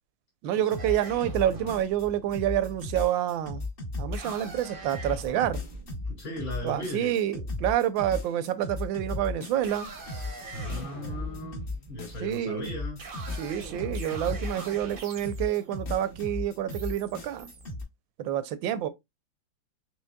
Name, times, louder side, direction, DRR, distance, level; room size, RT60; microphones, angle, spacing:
voice 1, 0.4-3.7 4.0-5.6 6.6-9.9 12.2-12.7 13.4-17.5 18.2-18.9, right 11 dB, 75° right, 1.3 m, -28 dB
sound 1, 0.7-2.0 2.3-4.6 4.9-9.8 10.1-12.4 12.6-14.9 15.2-17.8, left 2 dB, 50° left, 0.6 m, -36 dB
sound 2, 0.8-7.5 8.6-9.0 9.5-17.7, right 3 dB, 55° right, 0.6 m, -44 dB
voice 2, 6.1-7.2 10.5-13.0, left 1 dB, 70° left, 3.2 m, -38 dB
6.2 x 3.1 x 2.2 m
omnidirectional pair, 2.2 m